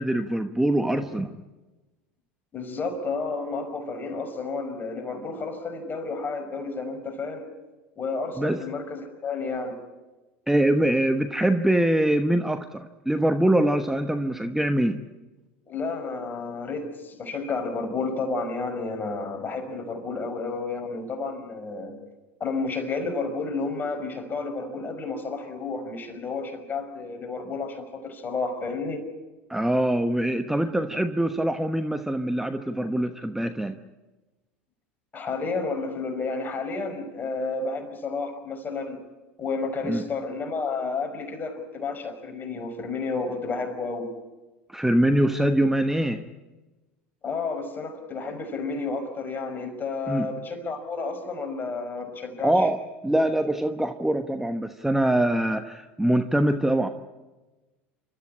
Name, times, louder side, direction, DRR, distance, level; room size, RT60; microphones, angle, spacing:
voice 1, 0.0-1.3 8.4-8.6 10.5-15.0 29.5-33.8 39.9-40.0 44.7-46.2 50.1-50.3 52.4-56.9, right 1 dB, 5° right, 7 dB, 1.1 m, -23 dB
voice 2, 2.5-7.5 8.0-9.8 15.7-22.0 22.4-29.1 35.1-39.0 39.4-44.1 47.2-52.7, left 4 dB, 30° left, 6 dB, 5.5 m, -31 dB
28.5 x 14.0 x 9.9 m, 1.2 s
hypercardioid pair, 80°, 6 cm